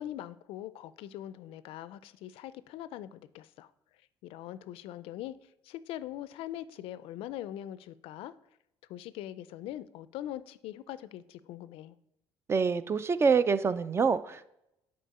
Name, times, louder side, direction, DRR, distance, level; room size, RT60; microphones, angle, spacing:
voice 1, 0.0-3.7 4.2-5.4 5.6-8.3 8.9-11.9, left 12 dB, 75° left, 0.4 m, -42 dB
voice 2, 12.5-14.5, right 5 dB, 25° right, 0.3 m, -26 dB
7.5 x 4.3 x 4.1 m
cardioid pair, 110°, 10 cm